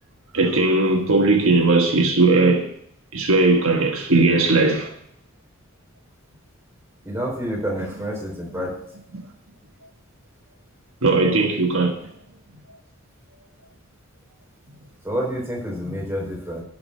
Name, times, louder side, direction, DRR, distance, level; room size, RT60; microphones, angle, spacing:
voice 1, 0.3-2.7 3.1-4.9 8.5-8.6 11.0-12.1, right 3 dB, 75° right, 1.3 m, -18 dB
voice 2, 7.0-8.8 15.0-16.6, equal, 15° right, 4.0 m, -28 dB
12.0 x 4.9 x 7.5 m
head